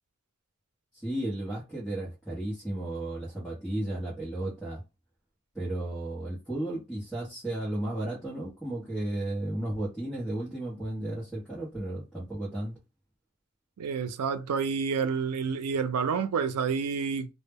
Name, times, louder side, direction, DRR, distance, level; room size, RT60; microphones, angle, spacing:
voice 1, 0.9-4.8 5.5-12.8, right 1 dB, ahead, 0.8 m, -34 dB
voice 2, 13.8-17.3, right 6 dB, 85° right, 0.4 m, -29 dB
2.1 x 2.0 x 3.4 m
head